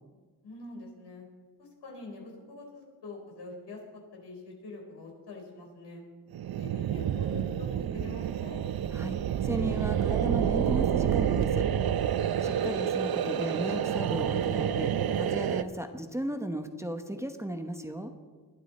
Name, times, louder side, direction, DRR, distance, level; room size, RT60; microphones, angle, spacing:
voice 1, 0.4-1.2 1.6-3.8 4.1-6.0 6.6-8.6, left 2 dB, 80° left, 0 dB, 4.3 m, -45 dB
sound 1, 6.3-15.6, right 9 dB, 65° right, 0.6 m, -28 dB
voice 2, 8.9-11.7 12.4-18.1, right 1 dB, 5° right, 6 dB, 1.0 m, -35 dB
21.0 x 12.0 x 4.2 m, 1.4 s
wide cardioid pair, 120°, 40 cm